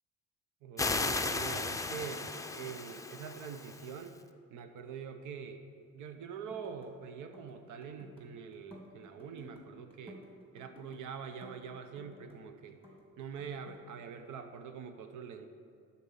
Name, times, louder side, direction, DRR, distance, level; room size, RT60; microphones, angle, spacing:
voice 1, 0.6-4.2 4.5-5.6 5.9-10.2 10.5-12.8 13.2-15.5, right 6 dB, 80° right, 8 dB, 0.8 m, -44 dB
sound 1, 0.8-4.1, left 3 dB, 10° left, 0.5 m, -35 dB
sound 2, 6.3-6.9 7.2-8.2 8.5-9.6 9.9-11.0 11.4-12.4 12.7-13.8, left 1 dB, 20° right, 2.2 m, -54 dB
12.0 x 4.2 x 7.2 m, 2.3 s
cardioid pair, 90°, 30 cm